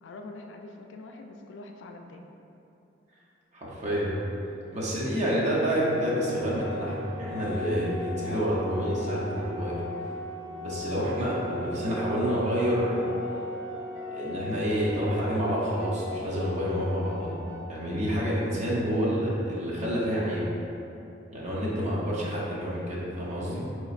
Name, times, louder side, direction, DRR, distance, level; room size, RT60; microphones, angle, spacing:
voice 1, 0.0-2.3, left 2 dB, 80° left, 3 dB, 0.3 m, -44 dB
voice 2, 3.5-4.2 4.7-9.8 10.6-13.0 14.1-17.4 17.7-20.4 21.3-23.7, equal, 40° right, -6 dB, 0.7 m, -28 dB
sound 1, 4.7-17.6, left 1 dB, 70° right, 0.8 m, -44 dB
Organ, 5.9-16.9, left 1 dB, 5° right, 0.3 m, -38 dB
4.1 x 3.0 x 2.4 m, 2.8 s
head